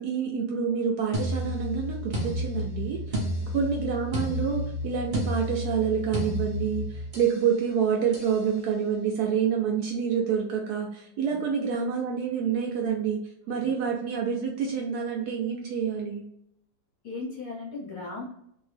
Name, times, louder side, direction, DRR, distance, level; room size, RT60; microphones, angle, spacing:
voice 1, 0.0-3.2 3.5-13.2 13.5-16.2, right 7 dB, 70° right, 0 dB, 1.0 m, -27 dB
sound 1, 1.1-7.4 8.1-8.4, equal, 55° right, 0.5 m, -31 dB
voice 2, 17.0-18.2, left 3 dB, 60° left, -3 dB, 1.0 m, -37 dB
2.7 x 2.6 x 3.2 m, 0.74 s
omnidirectional pair, 2.0 m